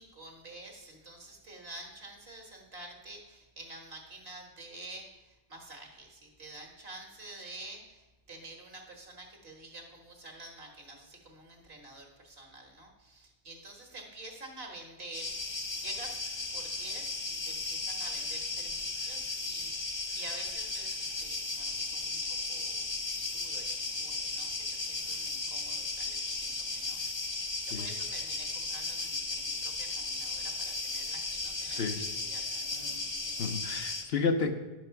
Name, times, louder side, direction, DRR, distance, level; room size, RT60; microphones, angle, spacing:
voice 1, 0.0-16.2 16.5-22.2 22.5-27.0 27.3-32.9, right 2 dB, 55° right, 2 dB, 1.8 m, -48 dB
sound 1, 15.1-34.0, left 3 dB, 25° left, 0.8 m, -35 dB
voice 2, 31.7-32.0 33.4-34.6, left 4 dB, 60° left, 7 dB, 0.9 m, -31 dB
10.5 x 5.9 x 5.7 m, 1.1 s
omnidirectional pair, 1.2 m